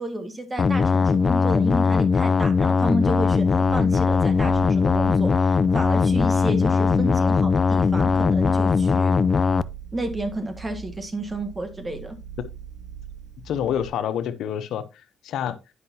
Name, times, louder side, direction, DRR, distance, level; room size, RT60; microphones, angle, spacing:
voice 1, 0.0-9.1 9.9-12.2, right 1 dB, 25° right, 1.7 m, -31 dB
sound 1, 0.6-9.6, left 5 dB, 40° left, 0.4 m, -20 dB
sound 2, 3.1-13.9, right 8 dB, 60° right, 2.3 m, -40 dB
voice 2, 13.4-15.6, left 9 dB, 80° left, 0.7 m, -28 dB
9.6 x 5.5 x 2.8 m
cardioid pair, 85°, 0 cm